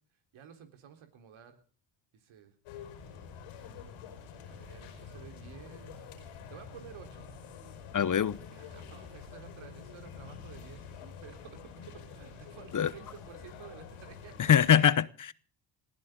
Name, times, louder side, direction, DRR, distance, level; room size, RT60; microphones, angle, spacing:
voice 1, 0.3-1.6 2.1-2.6 4.4-6.1 6.5-7.3 8.5-14.5, right 8 dB, 70° right, 3.9 m, -52 dB
sound 1, 2.7-14.8, left 6 dB, 85° left, 5.2 m, -47 dB
voice 2, 7.9-8.4 12.7-12.9 14.4-15.3, left 8 dB, 40° left, 0.9 m, -23 dB
20.5 x 15.0 x 3.8 m
supercardioid pair, 65°, 49 cm